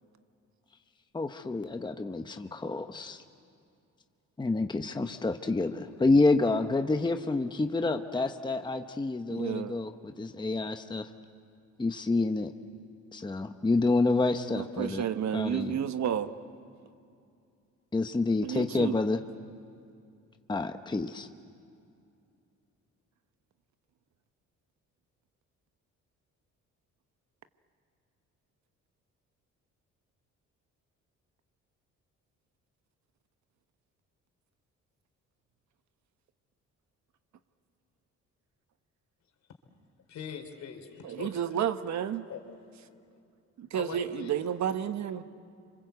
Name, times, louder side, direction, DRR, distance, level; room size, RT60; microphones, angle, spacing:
voice 1, 1.1-3.2 4.4-11.1 11.8-12.5 13.1-15.1 15.3-15.8 17.9-19.2 20.5-21.3, left 3 dB, 15° left, 7 dB, 0.9 m, -28 dB
voice 2, 9.3-9.8 14.5-16.3 18.4-19.0 41.0-42.3 43.6-45.2, right 9 dB, 65° right, 10 dB, 1.2 m, -31 dB
voice 3, 40.1-41.5 42.3-42.4 42.7-43.0 43.7-44.3, left 7 dB, 65° left, 5 dB, 3.5 m, -42 dB
28.0 x 25.5 x 8.1 m, 2.5 s
cardioid pair, 90°, 30 cm